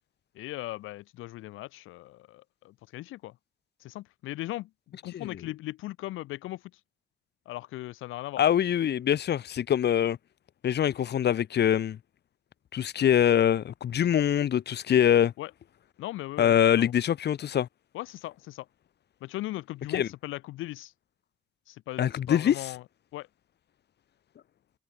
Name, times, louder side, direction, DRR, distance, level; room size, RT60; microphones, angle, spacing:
voice 1, 0.3-3.3 3.8-6.8 7.4-8.4 15.4-15.5 16.0-16.9 17.9-18.7 19.2-20.9 21.7-22.8 23.1-23.3, left 16 dB, 90° left, 1.3 m, -38 dB
voice 2, 8.4-10.2 10.6-12.0 12.7-15.3 16.4-17.7 19.9-20.1 22.0-22.5, left 10 dB, 55° left, 1.4 m, -24 dB
cardioid pair, 90°, 20 cm